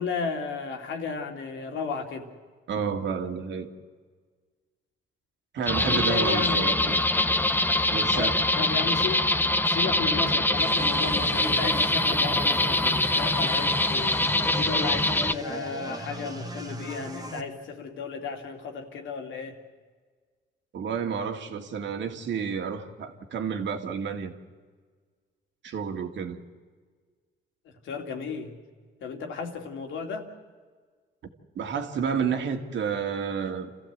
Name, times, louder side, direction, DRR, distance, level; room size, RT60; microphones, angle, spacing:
voice 1, 0.0-2.3 5.8-7.0 8.1-9.3 9.7-14.2 14.5-19.5 27.8-28.5 29.0-30.3, left 5 dB, 75° left, 2.7 m, -34 dB
voice 2, 2.7-3.7 5.5-7.0 7.9-8.5 20.7-24.3 25.6-26.4 31.6-33.7, right 6 dB, 65° right, 2.2 m, -30 dB
sound 1, 5.7-15.3, left 2 dB, 10° left, 0.8 m, -24 dB
sound 2, 10.6-17.4, right 2 dB, 20° right, 1.9 m, -38 dB
28.0 x 14.5 x 8.1 m
cardioid pair, 90°, 20 cm